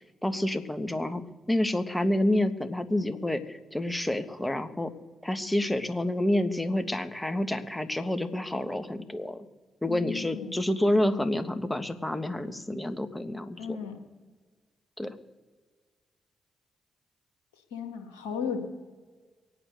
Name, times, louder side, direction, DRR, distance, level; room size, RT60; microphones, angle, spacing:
voice 1, 0.2-1.2 1.5-4.9 5.2-9.5 9.8-13.8 15.0-15.2, left 1 dB, 10° left, 9 dB, 1.6 m, -28 dB
voice 2, 9.9-10.6 13.5-14.0 17.7-18.6, left 6 dB, 90° left, 4 dB, 1.5 m, -35 dB
22.0 x 9.1 x 6.7 m, 1.5 s
hypercardioid pair, 45°, 0 cm